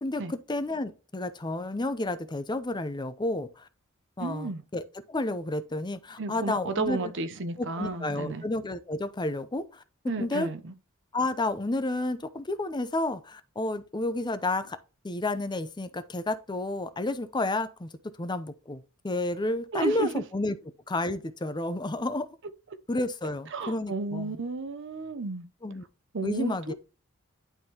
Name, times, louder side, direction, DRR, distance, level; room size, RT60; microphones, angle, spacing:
voice 1, 0.0-3.7 4.2-4.8 5.1-7.1 7.6-9.8 10.2-10.5 11.1-14.8 15.0-17.9 18.2-20.5 20.9-22.3 22.9-24.4 25.6-25.8 26.2-26.7, left 2 dB, 20° left, 0.6 m, -31 dB
voice 2, 4.2-4.6 6.2-8.4 10.1-10.7 19.7-20.1 22.7-22.8 23.5-25.4 26.1-26.7, right 3 dB, 60° right, 0.8 m, -32 dB
11.0 x 3.7 x 2.9 m
head